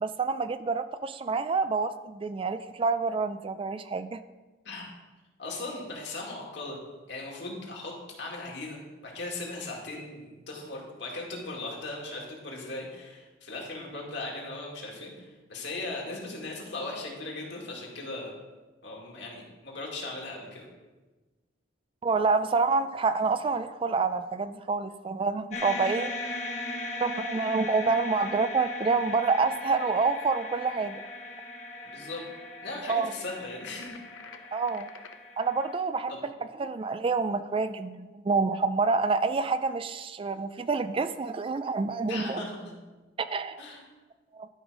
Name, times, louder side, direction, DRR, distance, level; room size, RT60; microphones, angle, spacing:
voice 1, 0.0-4.2 22.0-26.4 27.0-31.0 32.9-33.1 34.5-34.9 35.4-36.1 36.6-42.4 43.2-43.6 44.3-44.5, right 4 dB, 25° right, 11 dB, 0.3 m, -27 dB
voice 2, 5.4-6.8 7.1-7.9 8.2-18.3 18.8-20.7 31.8-32.2 32.6-34.0 36.1-36.2 42.1-42.7 43.6-43.8, left 2 dB, 65° left, -1 dB, 2.2 m, -38 dB
sound 1, 25.5-35.8, left 2 dB, 35° left, 1.3 m, -38 dB
sound 2, 33.6-35.2, left 6 dB, 80° left, 0.7 m, -48 dB
12.0 x 5.4 x 5.0 m, 1.2 s
head